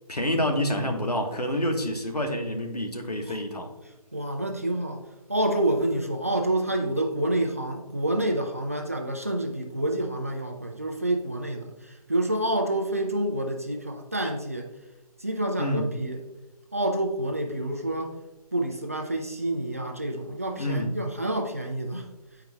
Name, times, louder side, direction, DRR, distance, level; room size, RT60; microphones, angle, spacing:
voice 1, 0.1-3.7 15.6-15.9 20.6-20.9, left 1 dB, 85° left, 1.2 m, -27 dB
voice 2, 3.8-14.8 15.2-16.2 16.7-18.2 18.5-22.1, right 1 dB, 25° right, 0.3 m, -28 dB
9.2 x 4.6 x 2.2 m
figure-of-eight pair, 155°, 20 cm